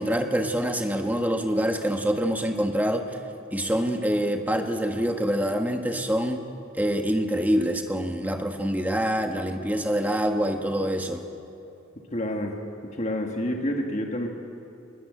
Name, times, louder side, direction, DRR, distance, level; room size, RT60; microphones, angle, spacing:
voice 1, 0.0-3.2 3.5-6.4 6.7-11.2, equal, 10° right, 4 dB, 1.5 m, -25 dB
voice 2, 12.1-12.6 12.8-14.3, left 1 dB, 35° left, 2 dB, 1.7 m, -28 dB
21.5 x 20.5 x 8.9 m, 2.7 s
head